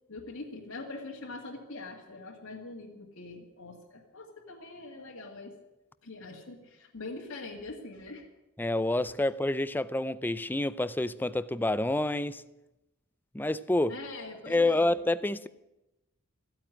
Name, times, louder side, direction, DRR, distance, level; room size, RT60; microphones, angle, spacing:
voice 1, 0.1-5.6 6.0-8.3 13.9-14.9, left 2 dB, 75° left, 2.2 m, -43 dB
voice 2, 8.6-12.4 13.3-13.9 14.5-15.5, left 2 dB, 10° left, 0.5 m, -28 dB
14.5 x 8.9 x 9.8 m
head